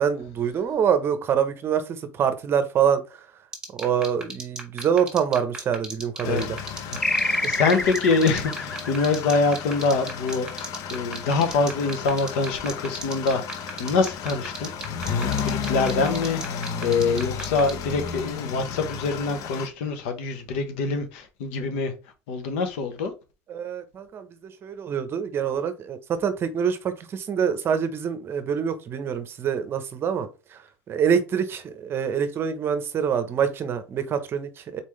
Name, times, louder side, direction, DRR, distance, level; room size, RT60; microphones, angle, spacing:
voice 1, 0.0-3.0 3.7-6.6 7.4-7.6 23.5-34.8, right 7 dB, 35° right, 0.8 m, -25 dB
sound 1, 3.5-17.7, right 3 dB, 10° right, 1.6 m, -34 dB
sound 2, 6.2-19.7, left 7 dB, 55° left, 0.8 m, -33 dB
voice 2, 6.9-21.9 22.3-23.1, left 4 dB, 85° left, 1.1 m, -25 dB
sound 3, 7.0-10.0, left 2 dB, 10° left, 0.3 m, -28 dB
4.1 x 3.7 x 3.2 m
supercardioid pair, 125°, 7 cm